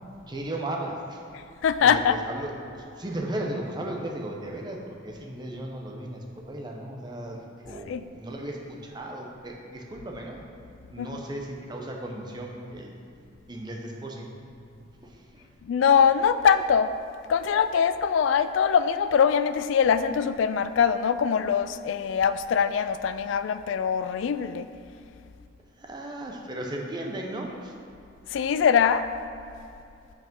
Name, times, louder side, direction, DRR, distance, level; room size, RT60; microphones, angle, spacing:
voice 1, 0.3-1.2 1.8-10.4 10.9-12.9 13.5-14.3 14.8-15.5 25.8-27.7, right 1 dB, 20° right, 1 dB, 0.7 m, -36 dB
voice 2, 1.3-2.2 7.7-8.1 11.0-11.2 15.6-16.9 17.3-24.7 28.3-29.0, left 7 dB, 75° left, 12 dB, 0.3 m, -23 dB
5.8 x 4.9 x 5.3 m, 2.6 s
head